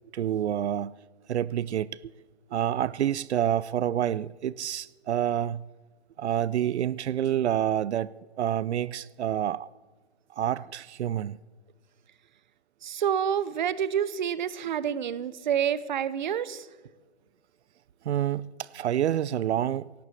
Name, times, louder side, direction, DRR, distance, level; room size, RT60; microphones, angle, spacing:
voice 1, 0.1-0.9 1.3-1.9 2.5-5.7 6.2-9.7 10.3-11.4 18.0-19.9, right 10 dB, 85° right, 0.5 m, -28 dB
voice 2, 12.8-16.7, right 9 dB, 45° right, 0.7 m, -28 dB
17.5 x 7.9 x 8.3 m
hypercardioid pair, 170°, 33 cm